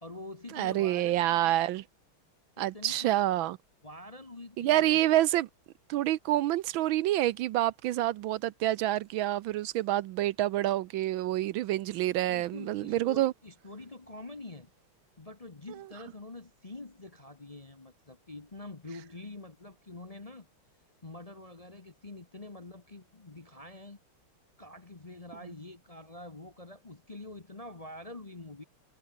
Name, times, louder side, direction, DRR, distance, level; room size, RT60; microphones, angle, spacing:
voice 1, 0.0-1.5 2.6-3.2 3.8-5.0 12.2-14.7 15.2-20.5 21.0-24.0 24.6-28.6, left 2 dB, 25° left, 0.8 m, -46 dB
voice 2, 0.5-1.8 2.6-3.6 4.6-5.5 5.9-13.3, right 14 dB, 75° right, 1.4 m, -27 dB
omnidirectional pair, 2.3 m